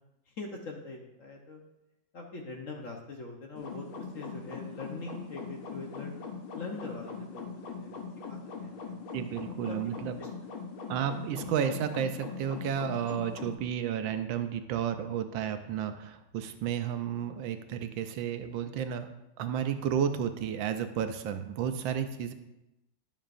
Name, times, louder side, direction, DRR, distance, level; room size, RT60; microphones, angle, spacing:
voice 1, 0.4-1.6 2.1-3.9 4.1-6.2 6.5-7.4 7.7-7.9 8.3-8.9 9.5-9.8 10.2-10.3, left 3 dB, 55° left, 0 dB, 1.0 m, -42 dB
sound 1, 3.6-13.6, left 4 dB, 90° left, 1.8 m, -41 dB
voice 2, 9.1-10.2 10.9-19.1 19.4-22.3, right 8 dB, 80° right, 9 dB, 1.4 m, -32 dB
11.0 x 7.4 x 2.5 m, 0.93 s
omnidirectional pair, 2.1 m